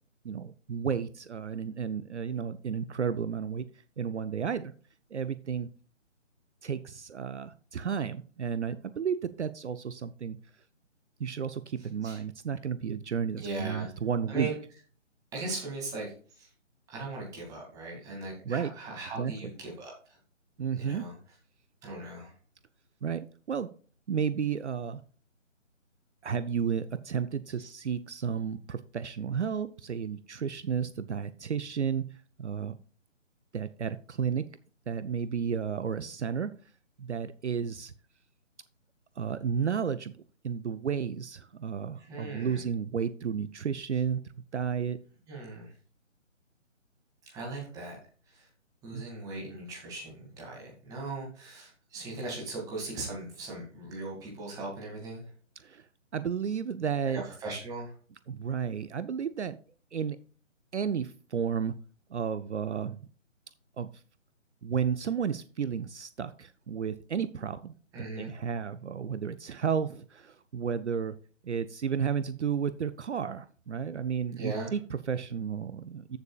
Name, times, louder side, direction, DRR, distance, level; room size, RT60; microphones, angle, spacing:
voice 1, 0.2-3.7 4.0-4.7 5.1-5.7 6.6-10.4 11.2-14.5 18.4-18.7 19.2-19.3 20.6-21.1 23.0-23.7 24.1-25.0 26.2-32.8 33.5-34.5 34.9-36.5 37.0-37.9 39.2-40.1 40.4-44.2 44.5-45.0 48.9-49.0 55.6-55.9 56.1-57.2 58.3-59.6 59.9-60.2 60.7-61.7 62.1-63.0 63.8-63.9 64.6-67.7 68.2-71.2 71.4-76.2, right 7 dB, 65° right, 13 dB, 0.7 m, -32 dB
voice 2, 13.4-13.9 14.3-14.5 15.3-16.5 16.9-19.9 20.8-21.1 21.8-22.3 42.1-42.6 45.3-45.7 47.3-48.0 48.3-48.5 48.8-55.2 57.1-57.9 67.9-68.3 74.4-74.7, right 2 dB, 10° right, -2 dB, 2.3 m, -38 dB
14.5 x 6.9 x 2.3 m, 0.40 s
figure-of-eight pair, 155°, 38 cm